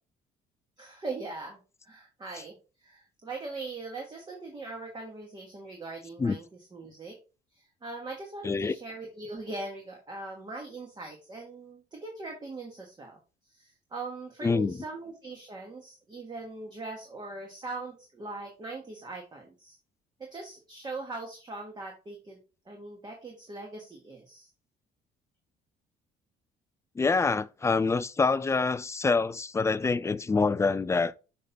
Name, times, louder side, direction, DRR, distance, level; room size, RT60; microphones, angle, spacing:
voice 1, 0.8-6.4 6.7-7.2 7.5-13.2 13.5-19.8 20.2-22.4 22.6-24.5, right 3 dB, 25° right, 1.5 m, -41 dB
voice 2, 8.4-8.8 14.4-14.8 27.0-31.1, left 4 dB, 15° left, 0.3 m, -26 dB
6.5 x 5.4 x 2.8 m
cardioid pair, 110°, 17 cm